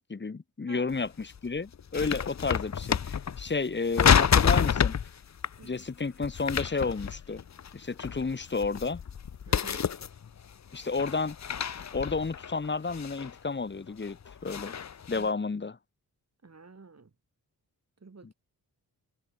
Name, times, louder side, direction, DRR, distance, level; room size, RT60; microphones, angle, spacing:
voice 1, 0.0-4.9 5.6-7.4 7.7-9.0 10.7-11.4 11.9-14.7 15.1-15.8 18.2-18.3, left 4 dB, 30° left, 1.2 m, -31 dB
sound 1, 0.9-1.0 1.4-3.5 3.9-5.1 5.4-5.5 6.2-7.7 8.0-9.3 9.5-10.4 10.8-13.3 13.9-15.2, left 7 dB, 45° left, 0.8 m, -28 dB
sound 2, 3.2-13.5, left 8 dB, 85° left, 4.2 m, -50 dB
voice 2, 9.5-9.9 15.1-15.3 16.4-17.1 18.0-18.3, right 4 dB, 40° right, 5.0 m, -48 dB
cardioid pair, 75°, 38 cm